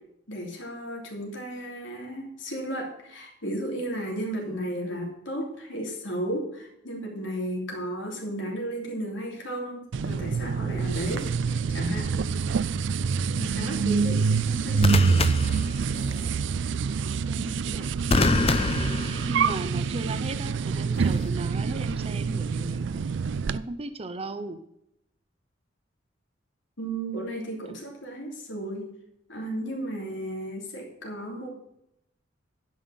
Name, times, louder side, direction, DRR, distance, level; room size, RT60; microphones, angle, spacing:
voice 1, 0.3-12.1 13.4-15.2 26.8-28.9 29.3-31.5, right 1 dB, 90° left, 0 dB, 3.1 m, -34 dB
sound 1, 9.9-23.6, right 5 dB, 70° right, 0.4 m, -26 dB
sound 2, 10.9-11.3 14.8-16.3 18.1-19.8 21.0-21.3, left 3 dB, 30° left, 0.6 m, -27 dB
voice 2, 17.1-18.4 19.3-23.0 23.5-24.6 27.7-27.8, right 2 dB, 30° right, 8 dB, 0.7 m, -36 dB
10.5 x 5.7 x 6.3 m, 0.78 s
head